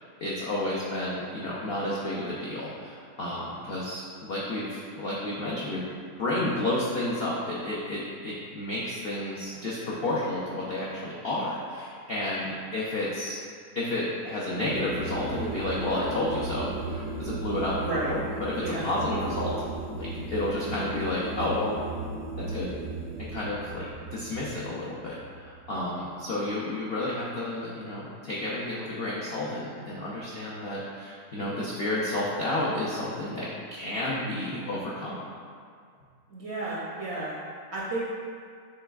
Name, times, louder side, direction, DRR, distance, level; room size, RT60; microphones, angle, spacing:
voice 1, 0.2-5.9 6.2-13.4 13.7-17.8 18.1-19.6 20.0-21.8 22.4-22.7 23.2-35.2, left 1 dB, 75° left, -6 dB, 0.5 m, -31 dB
sound 1, 14.5-25.8, right 3 dB, 85° right, 1.2 m, -36 dB
voice 2, 17.8-18.1 18.6-18.8 36.3-37.3 37.7-38.0, right 2 dB, 60° right, -6 dB, 0.7 m, -32 dB
6.7 x 3.2 x 2.3 m, 2.1 s
omnidirectional pair, 1.7 m